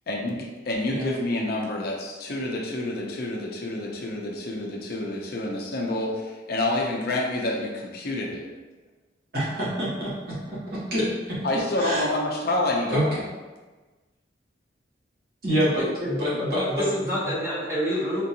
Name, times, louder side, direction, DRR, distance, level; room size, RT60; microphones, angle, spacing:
voice 1, 0.1-8.5 11.4-13.2, left 2 dB, 55° left, -1 dB, 0.5 m, -28 dB
voice 2, 9.3-12.0 12.9-13.2 15.4-17.3, equal, 55° right, -7 dB, 1.1 m, -27 dB
voice 3, 16.0-18.2, equal, 15° right, -9 dB, 1.1 m, -28 dB
3.6 x 2.6 x 2.7 m, 1.3 s
head